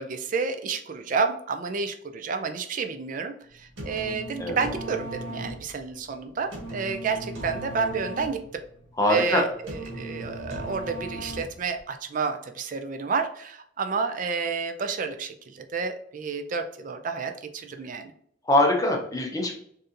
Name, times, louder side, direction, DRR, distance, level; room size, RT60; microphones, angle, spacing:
voice 1, 0.0-8.4 9.1-18.1, right 5 dB, 40° right, 7 dB, 0.3 m, -30 dB
sound 1, 3.5-11.8, right 1 dB, 70° right, 1.0 m, -38 dB
voice 2, 9.0-9.4 18.4-19.6, left 1 dB, 15° left, 1 dB, 0.6 m, -22 dB
4.1 x 2.6 x 2.5 m, 0.67 s
head